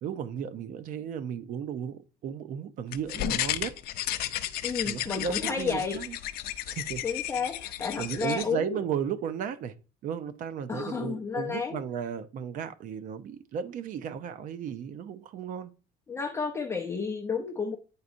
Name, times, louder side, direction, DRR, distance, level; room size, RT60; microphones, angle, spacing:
voice 1, 0.0-3.8 4.9-6.2 6.7-7.0 8.0-9.7 10.0-15.7, right 8 dB, 50° right, 0.6 m, -35 dB
sound 1, 2.9-8.4, left 13 dB, 65° left, 0.5 m, -33 dB
voice 2, 4.6-6.0 7.0-8.8 10.7-11.8 16.1-17.8, left 5 dB, 15° left, 0.5 m, -31 dB
9.6 x 4.0 x 2.6 m
cardioid pair, 165°, 17 cm